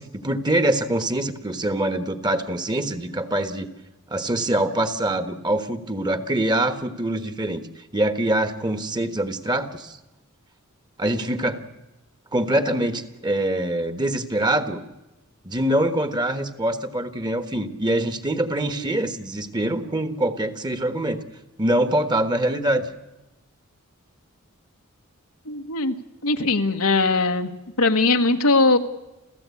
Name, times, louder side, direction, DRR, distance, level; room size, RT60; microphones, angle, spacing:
voice 1, 0.0-3.7 4.1-7.7 7.9-10.0 11.0-11.6 12.3-14.8 15.4-21.2 21.6-22.9, right 1 dB, 20° right, 10 dB, 1.3 m, -24 dB
voice 2, 25.5-25.9 26.2-27.5 27.8-28.8, left 3 dB, 85° left, 6 dB, 1.4 m, -20 dB
29.0 x 15.0 x 8.4 m, 1.0 s
head